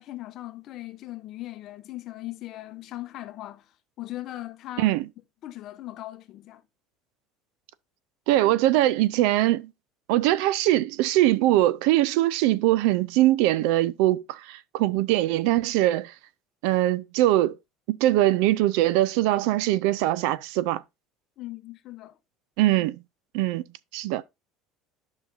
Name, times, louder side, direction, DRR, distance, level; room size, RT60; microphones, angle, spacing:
voice 1, 0.0-4.9 5.4-6.6 21.4-22.2, left 16 dB, 45° left, 0.7 m, -39 dB
voice 2, 8.3-9.7 10.1-16.1 16.6-17.5 17.9-20.8 22.6-23.0 23.3-23.6 23.9-24.2, right 15 dB, 75° right, 0.4 m, -22 dB
10.5 x 5.7 x 2.6 m
cardioid pair, 150°, 0 cm